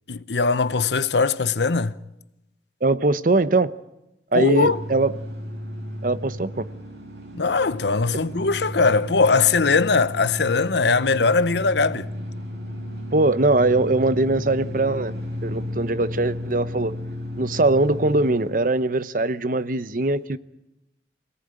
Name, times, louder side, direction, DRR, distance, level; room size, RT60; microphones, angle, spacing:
voice 1, 0.1-2.0 4.3-4.8 7.3-12.1, left 4 dB, 80° left, 0.9 m, -20 dB
voice 2, 2.8-3.8 4.3-5.1 6.0-6.7 13.1-15.1 15.4-17.0 17.4-20.4, right 2 dB, 50° right, 0.8 m, -21 dB
sound 1, 4.6-18.7, left 1 dB, 75° right, 5.2 m, -33 dB
25.0 x 18.0 x 9.0 m
head